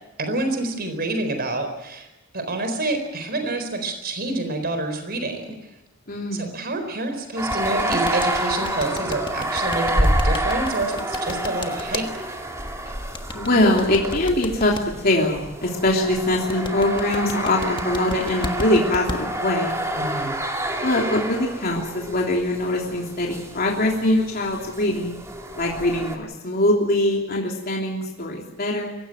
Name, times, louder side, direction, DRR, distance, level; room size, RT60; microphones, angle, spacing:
voice 1, 0.2-2.1 2.3-5.5 6.3-12.0 20.0-20.3, right 2 dB, 50° right, 7 dB, 4.2 m, -27 dB
voice 2, 6.1-6.5 13.3-19.8 20.8-25.2 25.6-28.9, left 1 dB, 45° left, -1 dB, 3.2 m, -22 dB
sound 1, 7.4-26.2, right 1 dB, 15° right, 2.6 m, -28 dB
sound 2, 7.5-12.0 13.1-14.8 16.3-19.2, left 2 dB, 25° left, 1.4 m, -32 dB
23.5 x 16.0 x 9.0 m, 0.97 s
head